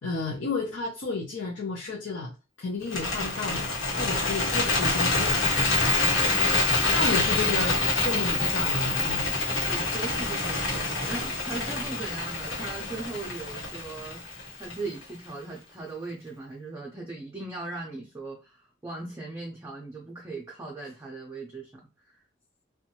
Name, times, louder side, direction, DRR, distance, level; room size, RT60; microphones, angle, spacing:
voice 1, 0.0-2.3 2.6-3.7 3.9-5.4 6.9-9.3, left 3 dB, 65° left, -2 dB, 0.6 m, -32 dB
Bird, 2.8-15.0, left 2 dB, 90° left, 1.0 m, -26 dB
voice 2, 5.9-6.3 9.5-14.2 14.6-21.8 22.1-22.2, right 3 dB, 15° right, -3 dB, 0.5 m, -39 dB
2.6 x 2.2 x 2.8 m, 0.26 s
head